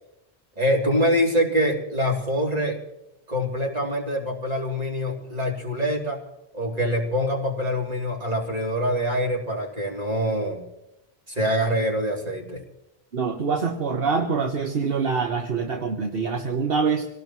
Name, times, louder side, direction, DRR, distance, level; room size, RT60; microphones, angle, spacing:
voice 1, 0.6-2.8 3.3-6.2 6.5-10.6 11.3-12.6, equal, 40° right, -1 dB, 3.3 m, -25 dB
voice 2, 13.1-17.1, right 5 dB, 65° right, 4 dB, 1.3 m, -25 dB
25.5 x 18.0 x 3.1 m, 0.89 s
omnidirectional pair, 1.0 m